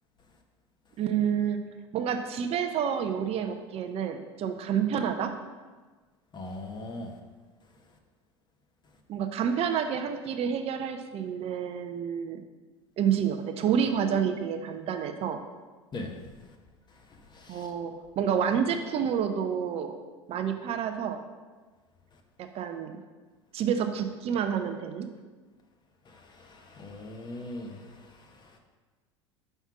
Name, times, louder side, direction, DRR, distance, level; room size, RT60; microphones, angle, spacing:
voice 1, 1.0-1.6 1.9-5.3 9.1-12.4 13.0-15.4 17.5-19.9 20.3-21.2 22.4-22.9 23.5-25.1, right 8 dB, 40° right, 6 dB, 0.6 m, -29 dB
voice 2, 6.3-7.1 15.9-16.1 17.3-17.7 26.1-28.1 28.4-28.6, left 2 dB, 30° left, 3 dB, 1.1 m, -40 dB
5.7 x 4.5 x 5.9 m, 1.3 s
hypercardioid pair, 75°, 15 cm